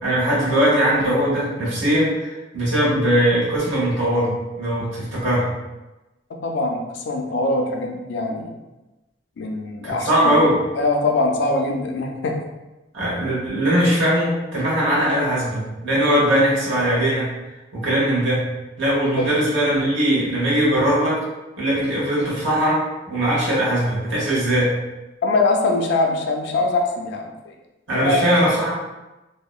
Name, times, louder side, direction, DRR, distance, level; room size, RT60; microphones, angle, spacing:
voice 1, 0.0-5.5 9.8-10.6 12.9-17.3 17.7-18.4 18.8-21.2 21.6-24.7 27.9-28.7, equal, 70° right, -7 dB, 1.0 m, -20 dB
voice 2, 6.4-8.5 9.4-10.4 10.7-12.4 19.2-19.3 25.2-27.5 27.9-28.5, left 2 dB, 65° left, 2 dB, 0.4 m, -22 dB
2.8 x 2.1 x 2.3 m, 1.0 s
head